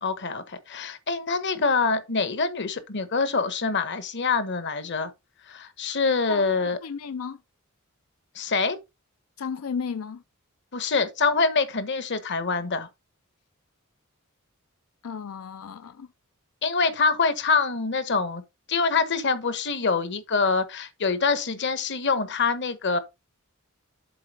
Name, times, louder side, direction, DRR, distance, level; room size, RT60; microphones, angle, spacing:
voice 1, 0.0-5.1 5.5-6.8 8.3-8.8 10.7-12.9 16.6-18.4 18.7-23.0, left 4 dB, 55° left, 1.2 m, -25 dB
voice 2, 6.8-7.4 9.4-10.2 15.0-16.1, left 6 dB, 90° left, 0.5 m, -33 dB
7.7 x 4.2 x 5.2 m
head